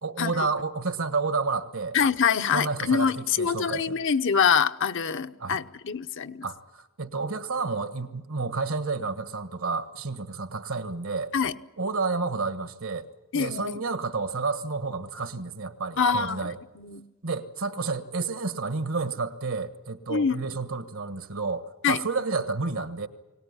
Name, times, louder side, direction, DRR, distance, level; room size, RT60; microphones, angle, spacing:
voice 1, 0.0-2.0 2.5-4.0 5.4-5.6 6.4-11.3 11.8-13.1 13.3-16.6 17.2-23.1, right 4 dB, 70° right, 1.5 m, -30 dB
voice 2, 1.9-6.5 11.3-11.5 13.3-13.8 16.0-16.5 16.8-17.0 20.1-20.5 21.8-22.0, left 6 dB, 60° left, 0.8 m, -25 dB
23.0 x 18.5 x 9.8 m
head